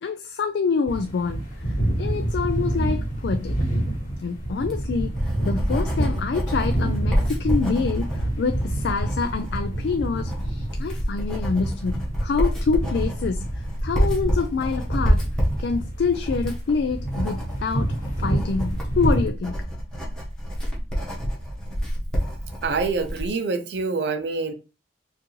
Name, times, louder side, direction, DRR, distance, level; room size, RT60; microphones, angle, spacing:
voice 1, 0.0-3.6 4.2-5.1 5.4-13.5 13.8-15.2 15.6-19.6, left 4 dB, 75° left, 0.4 m, -26 dB
sound 1, 0.9-19.3, right 1 dB, 50° left, 2.0 m, -28 dB
Writing, 4.5-23.3, equal, 5° left, 1.2 m, -28 dB
voice 2, 22.6-24.5, right 4 dB, 70° right, 0.5 m, -26 dB
4.5 x 2.6 x 3.1 m
head